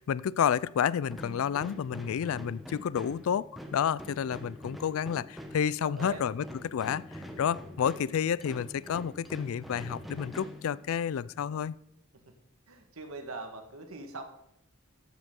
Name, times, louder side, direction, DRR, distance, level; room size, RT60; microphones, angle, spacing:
voice 1, 0.0-11.7, left 8 dB, 70° left, 20 dB, 0.3 m, -30 dB
sound 1, 1.1-11.2, equal, ahead, 1.1 m, -45 dB
voice 2, 5.8-6.2 12.7-14.2, right 3 dB, 85° right, 6 dB, 1.6 m, -42 dB
14.0 x 8.0 x 3.8 m, 0.78 s
head